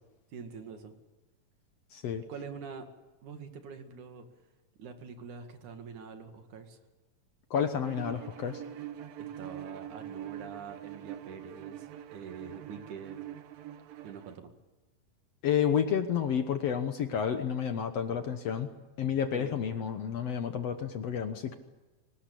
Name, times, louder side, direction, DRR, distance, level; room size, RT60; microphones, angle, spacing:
voice 1, 0.3-0.9 2.2-2.9 3.2-4.3 4.8-6.8 9.2-13.2 14.0-14.5 19.3-19.6, right 6 dB, 65° right, 6 dB, 3.5 m, -45 dB
voice 2, 1.9-2.2 7.5-8.6 15.4-18.7 19.0-21.6, left 8 dB, 60° left, 8 dB, 1.8 m, -30 dB
Bowed string instrument, 7.8-14.4, right 10 dB, 85° right, 2.8 m, -44 dB
24.0 x 19.5 x 8.5 m, 1.1 s
omnidirectional pair, 4.0 m